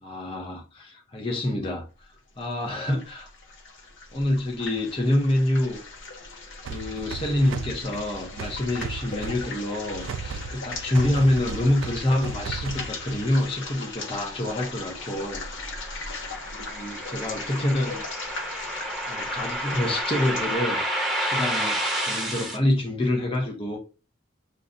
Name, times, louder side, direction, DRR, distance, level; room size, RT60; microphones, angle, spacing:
voice 1, 0.0-2.1 2.4-3.3 4.1-5.8 6.7-15.4 15.8-16.1 16.7-18.0 19.0-20.8 21.2-23.8, left 1 dB, 30° left, 0.8 m, -26 dB
sound 1, 2.4-20.6, left 3 dB, 70° left, 1.0 m, -38 dB
sound 2, 6.6-13.4, right 4 dB, 80° right, 0.3 m, -36 dB
sound 3, 14.7-22.6, right 1 dB, ahead, 1.0 m, -30 dB
6.6 x 2.3 x 2.6 m
head